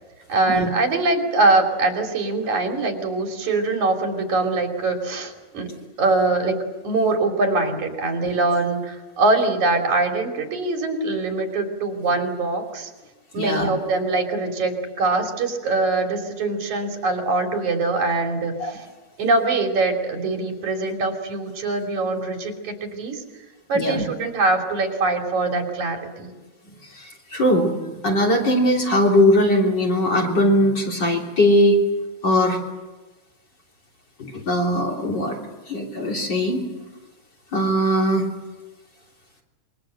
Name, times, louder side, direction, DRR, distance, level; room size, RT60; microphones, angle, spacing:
voice 1, 0.3-5.7 6.0-6.6 6.8-12.9 13.3-18.8 19.2-23.2 23.7-26.3, right 3 dB, 80° right, 3 dB, 4.5 m, -23 dB
voice 2, 13.4-13.7 18.6-18.7 23.7-24.0 27.0-27.7 28.0-31.8 32.2-32.6 34.2-35.4 35.7-36.6 37.5-38.2, equal, 35° left, 0 dB, 3.9 m, -20 dB
26.5 x 23.0 x 7.8 m, 1.2 s
omnidirectional pair, 3.3 m